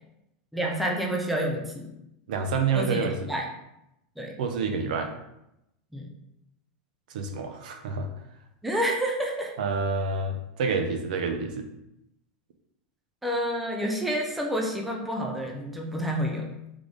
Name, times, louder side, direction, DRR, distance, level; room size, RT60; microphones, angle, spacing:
voice 1, 0.5-1.9 2.7-3.5 4.2-4.4 5.9-6.1 8.6-9.5 13.2-16.5, equal, ahead, 0 dB, 0.4 m, -29 dB
voice 2, 2.3-3.3 4.4-5.1 7.1-8.1 9.6-11.7, right 4 dB, 75° right, 5 dB, 0.6 m, -28 dB
3.4 x 3.3 x 3.8 m, 0.85 s
supercardioid pair, 170°, 4 cm